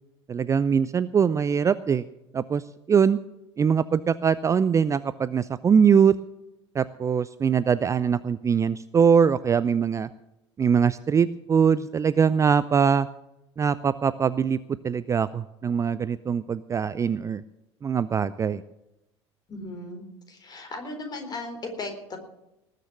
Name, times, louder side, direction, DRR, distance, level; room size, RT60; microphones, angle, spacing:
voice 1, 0.3-2.0 2.3-3.2 3.6-6.1 6.7-10.1 10.6-13.1 13.6-14.6 14.8-17.4 17.8-18.6, right 7 dB, 20° right, 16 dB, 0.4 m, -22 dB
voice 2, 19.5-22.2, left 2 dB, 25° left, 4 dB, 4.1 m, -36 dB
19.5 x 6.7 x 8.5 m, 0.88 s
figure-of-eight pair, 70°, 15 cm